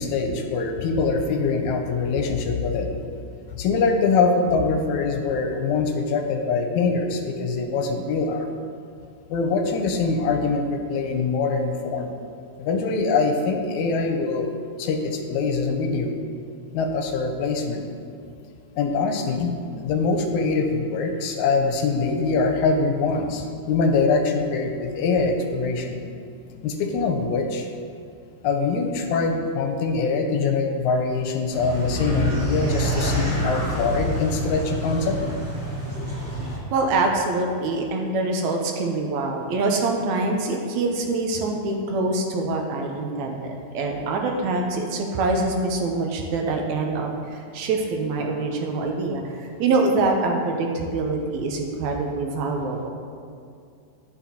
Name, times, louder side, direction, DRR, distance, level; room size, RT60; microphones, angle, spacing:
voice 1, 0.0-2.9 3.5-8.5 9.3-12.1 12.6-14.5 14.8-16.2 16.7-17.8 18.8-26.0 26.6-27.7 28.4-35.2, left 4 dB, 85° left, 4 dB, 2.0 m, -23 dB
sound 1, 31.5-36.6, equal, 35° right, 2.2 m, -26 dB
voice 2, 36.7-52.9, right 3 dB, 80° right, 2 dB, 2.0 m, -25 dB
11.0 x 5.7 x 2.9 m, 2.4 s
omnidirectional pair, 3.4 m